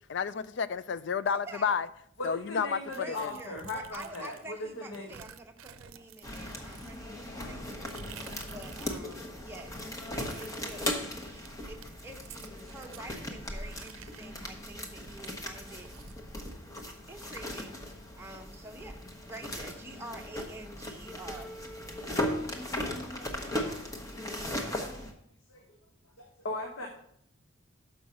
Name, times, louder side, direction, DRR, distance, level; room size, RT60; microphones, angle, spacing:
voice 1, 0.1-1.9 2.2-2.8 3.1-3.3, left 6 dB, 55° left, 0.4 m, -30 dB
voice 2, 1.3-1.7 2.9-9.8 10.1-10.9 11.2-15.9 17.1-17.8 18.1-21.5, right 2 dB, 10° right, 0.8 m, -47 dB
voice 3, 2.2-5.1 7.1-7.2 7.4-7.7 8.1-8.2 23.5-24.0 24.9-25.1 25.5-25.8 26.2-26.9, left 2 dB, 85° left, 1.2 m, -39 dB
sound 1, 2.9-4.5 4.9-9.1 9.4-13.1 13.6-16.2, right 7 dB, 80° right, 0.6 m, -51 dB
sound 2, 6.2-25.1, left 1 dB, 15° left, 0.9 m, -38 dB
6.9 x 5.5 x 6.2 m
head